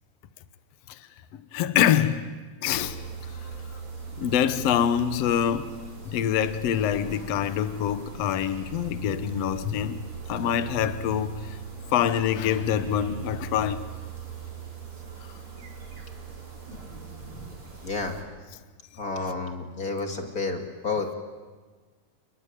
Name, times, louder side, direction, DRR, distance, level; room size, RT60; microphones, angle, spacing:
voice 1, 1.5-2.3 2.6-3.0 4.2-5.7 6.1-10.0 10.3-11.6 11.9-13.8, left 9 dB, 65° left, 2.1 m, -25 dB
sound 1, 2.7-18.2, right 6 dB, 45° right, 5.7 m, -40 dB
voice 2, 17.8-18.2 18.9-21.1, left 3 dB, 30° left, 2.4 m, -30 dB
29.5 x 21.0 x 9.2 m
omnidirectional pair, 3.4 m